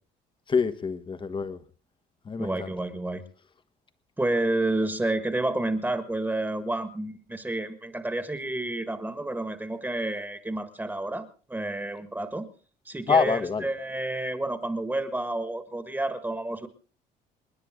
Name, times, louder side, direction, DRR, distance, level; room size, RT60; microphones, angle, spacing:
voice 1, 0.5-1.6 2.3-2.7 13.1-13.7, left 5 dB, 30° left, 12 dB, 1.3 m, -26 dB
voice 2, 2.4-3.2 4.2-12.4 12.8-16.7, right 2 dB, 10° right, 9 dB, 1.6 m, -30 dB
28.0 x 10.0 x 3.7 m, 0.38 s
cardioid pair, 110°, 17 cm